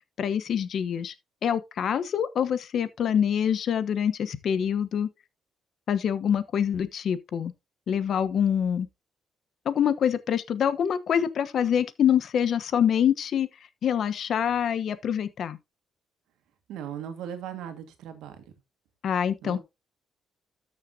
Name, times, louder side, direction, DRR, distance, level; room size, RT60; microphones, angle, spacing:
voice 1, 0.2-1.1 1.4-5.1 5.9-7.5 7.9-8.9 9.6-13.5 13.8-15.6 19.0-19.6, left 8 dB, 60° left, 1.0 m, -25 dB
voice 2, 16.7-18.4 19.4-19.6, right 9 dB, 90° right, 1.8 m, -38 dB
13.0 x 6.6 x 2.8 m
cardioid pair, 90°, 0 cm